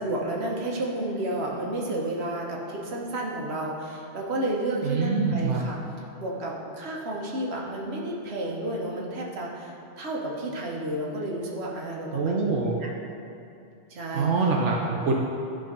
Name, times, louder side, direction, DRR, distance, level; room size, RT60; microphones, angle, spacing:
voice 1, 0.0-5.8 6.2-12.6 13.9-14.3, right 1 dB, 65° right, -2 dB, 1.4 m, -31 dB
voice 2, 4.8-5.6 12.1-12.8 14.1-15.1, right 4 dB, 90° right, -2 dB, 1.1 m, -25 dB
11.0 x 3.8 x 5.2 m, 2.6 s
omnidirectional pair, 1.2 m